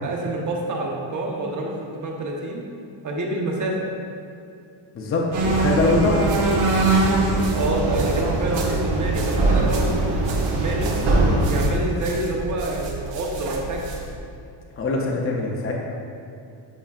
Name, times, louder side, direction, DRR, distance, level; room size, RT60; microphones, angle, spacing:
voice 1, 0.0-2.6 3.0-3.9 7.5-10.9 11.5-13.9, right 2 dB, 40° right, -1 dB, 1.0 m, -27 dB
voice 2, 4.9-6.3 14.8-15.7, left 2 dB, 30° left, -1 dB, 0.6 m, -22 dB
sound 1, 5.3-11.7, right 2 dB, 85° right, 1.4 m, -21 dB
sound 2, 5.5-14.2, right 4 dB, 65° right, 1.0 m, -34 dB
8.9 x 5.9 x 2.4 m, 2.7 s
cardioid pair, 155°, 48 cm